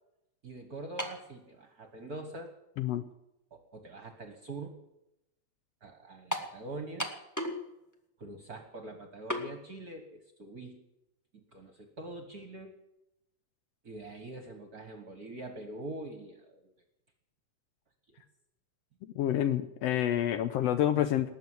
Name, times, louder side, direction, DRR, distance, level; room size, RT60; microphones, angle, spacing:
voice 1, 0.4-2.6 3.5-4.8 5.8-7.1 8.2-10.8 11.3-12.7 13.8-16.7 18.1-18.2 21.0-21.1, right 2 dB, 45° right, 6 dB, 1.3 m, -44 dB
sound 1, 1.0-1.3 2.2-2.3 6.3-6.6 7.0-7.6 7.9-8.0 9.3-9.5, equal, 15° left, 0.6 m, -34 dB
voice 2, 2.8-3.1 19.0-21.3, left 11 dB, 70° left, 11 dB, 1.6 m, -28 dB
19.0 x 7.2 x 9.7 m, 0.88 s
omnidirectional pair, 3.3 m